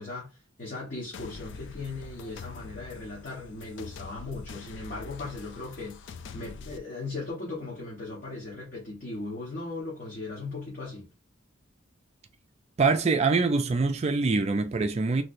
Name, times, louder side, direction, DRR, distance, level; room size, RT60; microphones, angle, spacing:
voice 1, 0.0-11.1, left 3 dB, 45° left, 1.3 m, -38 dB
sound 1, 1.1-6.8, left 4 dB, 60° left, 0.4 m, -44 dB
voice 2, 12.8-15.2, right 4 dB, 30° right, 0.4 m, -24 dB
3.2 x 3.1 x 2.6 m
head